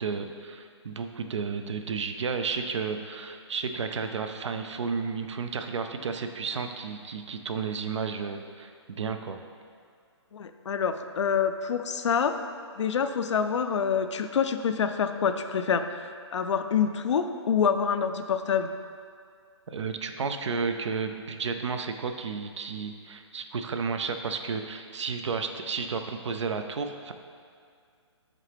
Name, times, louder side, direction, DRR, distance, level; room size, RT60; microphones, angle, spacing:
voice 1, 0.0-9.4 19.7-27.1, right 5 dB, 75° right, 7 dB, 0.5 m, -32 dB
voice 2, 10.3-12.4 12.8-15.9 16.3-18.7, left 7 dB, 75° left, 9 dB, 0.4 m, -26 dB
7.4 x 3.9 x 3.4 m, 2.2 s
hypercardioid pair, 150°, 15 cm